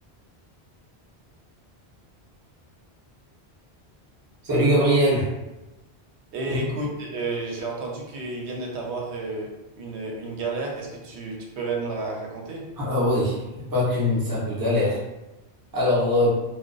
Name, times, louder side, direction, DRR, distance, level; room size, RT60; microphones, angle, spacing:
voice 1, 4.4-5.3 6.5-6.7 12.8-15.0 15.7-16.3, left 1 dB, 25° right, -7 dB, 0.6 m, -22 dB
voice 2, 6.3-12.6, right 3 dB, 85° right, -1 dB, 0.9 m, -31 dB
2.5 x 2.2 x 2.2 m, 0.99 s
omnidirectional pair, 1.1 m